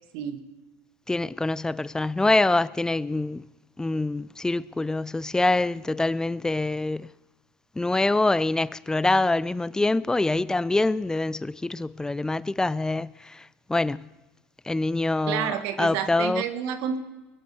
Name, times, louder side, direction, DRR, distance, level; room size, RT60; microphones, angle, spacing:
voice 1, 0.1-0.4 15.3-17.0, right 9 dB, 70° right, 1.7 m, -29 dB
voice 2, 1.1-3.4 3.8-7.1 7.8-14.1 14.7-16.4, left 2 dB, 10° left, 0.4 m, -25 dB
21.0 x 8.0 x 7.0 m
supercardioid pair, 95°, 7 cm